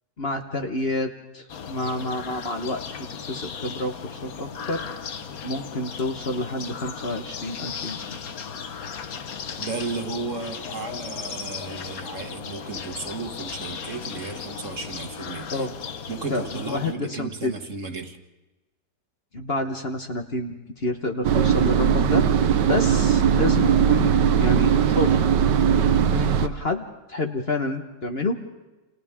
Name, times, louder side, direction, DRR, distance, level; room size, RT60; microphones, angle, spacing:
voice 1, 0.2-2.8 3.3-4.8 5.4-8.2 15.5-15.7 16.3-17.5 19.3-22.2 22.7-24.1 24.4-25.1 26.1-26.8 27.1-28.5, left 2 dB, 35° left, 3 dB, 1.4 m, -29 dB
sound 1, 1.5-16.9, left 6 dB, 60° left, 1.4 m, -36 dB
voice 2, 9.6-15.7 16.1-18.2, right 4 dB, 45° right, 5 dB, 1.8 m, -34 dB
sound 2, 21.2-26.5, right 8 dB, 80° right, 1.5 m, -19 dB
29.0 x 28.0 x 3.7 m, 1.1 s
omnidirectional pair, 1.8 m